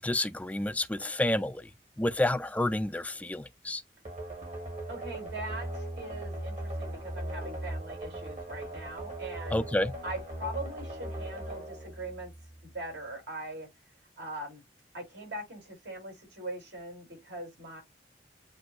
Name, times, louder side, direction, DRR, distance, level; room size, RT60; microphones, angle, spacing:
voice 1, 0.0-1.6 2.0-3.8 9.5-9.9, left 1 dB, 10° left, 0.3 m, -29 dB
sound 1, 4.0-12.7, right 1 dB, 45° right, 1.8 m, -39 dB
voice 2, 4.9-9.6 10.0-12.3 12.6-13.7 14.2-14.6 14.9-17.8, right 1 dB, 75° right, 3.1 m, -41 dB
7.7 x 2.6 x 2.4 m
head